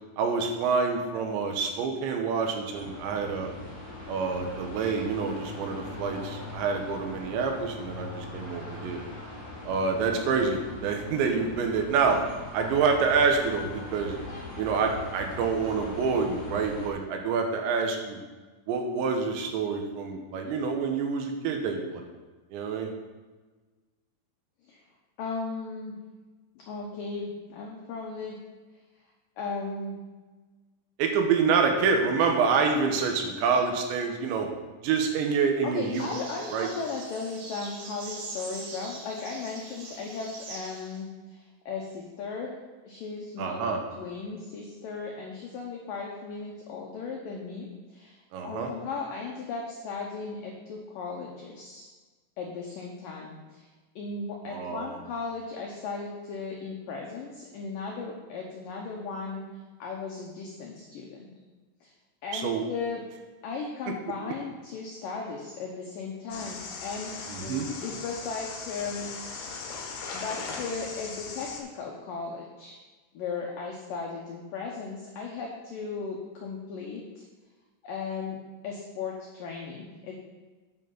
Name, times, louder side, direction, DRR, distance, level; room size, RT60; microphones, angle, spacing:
voice 1, 0.2-3.5 4.1-9.0 9.7-12.2 12.5-14.1 14.6-18.2 18.7-22.0 22.5-22.9 31.0-34.5 34.8-36.1 36.5-36.7 43.4-43.8 48.3-48.7 54.5-55.0 62.3-62.6 67.3-67.7, right 5 dB, 80° right, 4 dB, 3.2 m, -27 dB
sound 1, 2.7-16.9, left 2 dB, 45° left, 4.4 m, -41 dB
voice 2, 25.2-26.0 26.7-28.4 29.4-30.0 35.6-42.5 42.8-43.7 43.9-48.2 48.4-51.8 52.4-53.7 54.0-59.5 59.8-61.3 61.8-61.9 62.2-63.0 63.4-69.1 70.1-72.8 73.1-77.2 77.8-78.4 78.6-80.1, left 4 dB, 85° left, -1 dB, 1.9 m, -36 dB
sound 2, 35.9-41.0, right 3 dB, 60° right, 2.6 m, -42 dB
sound 3, 66.3-71.6, left 4 dB, 70° left, 3.0 m, -39 dB
9.1 x 8.3 x 3.9 m, 1.3 s
omnidirectional pair, 5.3 m